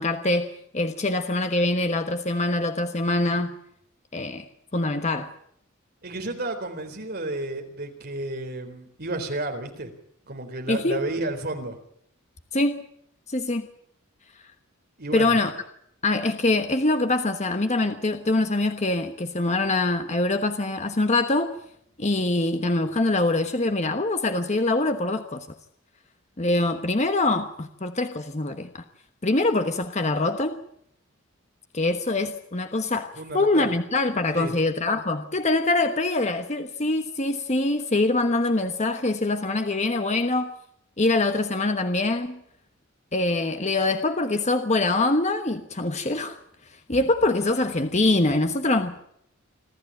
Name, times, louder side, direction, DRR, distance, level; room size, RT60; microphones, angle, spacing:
voice 1, 0.0-3.6 4.1-4.4 4.7-5.3 10.7-11.0 12.5-12.9 13.3-13.7 15.1-15.5 16.0-21.5 22.0-25.5 26.4-28.8 29.2-30.6 31.7-40.5 41.0-42.4 43.1-46.4 46.9-48.9, left 2 dB, 35° left, 7 dB, 1.2 m, -24 dB
voice 2, 6.0-9.9 10.3-11.8 15.0-15.4 33.2-33.7 34.3-34.5, right 2 dB, 50° right, 4 dB, 4.1 m, -32 dB
26.5 x 13.5 x 8.7 m, 0.71 s
head